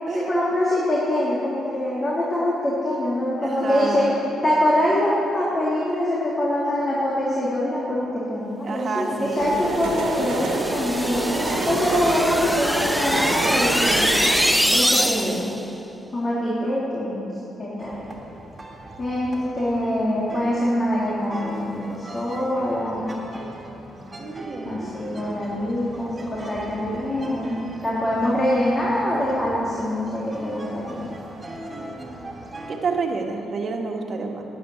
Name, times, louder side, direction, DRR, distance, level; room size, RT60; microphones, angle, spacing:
voice 1, 0.1-4.1 4.4-14.1 14.7-15.5 16.1-17.3 17.6-18.1 19.0-23.1 24.6-31.1, left 1 dB, 30° left, -7 dB, 3.2 m, -24 dB
voice 2, 3.4-4.2 8.6-9.8 10.5-10.6 14.6-15.4 24.2-24.9 31.8-34.4, right 4 dB, 50° right, 2 dB, 2.0 m, -30 dB
sound 1, 9.4-14.6, right 3 dB, 80° right, 1.9 m, -27 dB
sound 2, 9.6-15.6, equal, ahead, 0.5 m, -24 dB
sound 3, 17.8-32.8, right 1 dB, 25° right, 3.2 m, -40 dB
12.5 x 9.7 x 9.1 m, 2.9 s
cardioid pair, 90°, 0 cm